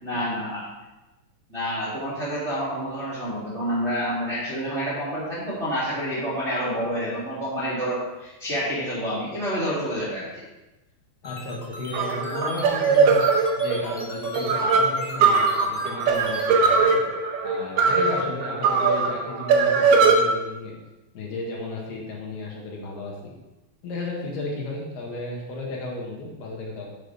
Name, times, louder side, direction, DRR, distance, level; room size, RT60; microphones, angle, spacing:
voice 1, 0.0-0.6 1.5-10.2, equal, 20° right, -8 dB, 2.2 m, -28 dB
voice 2, 11.2-13.3 13.6-17.0 17.4-20.7 21.2-23.3 23.8-26.9, left 2 dB, 70° left, -2 dB, 3.5 m, -34 dB
sound 1, 11.2-16.4, left 2 dB, 20° left, 1.4 m, -40 dB
sound 2, 11.9-20.2, right 5 dB, 70° right, 2.9 m, -20 dB
11.0 x 8.8 x 3.5 m, 1.0 s
omnidirectional pair, 5.0 m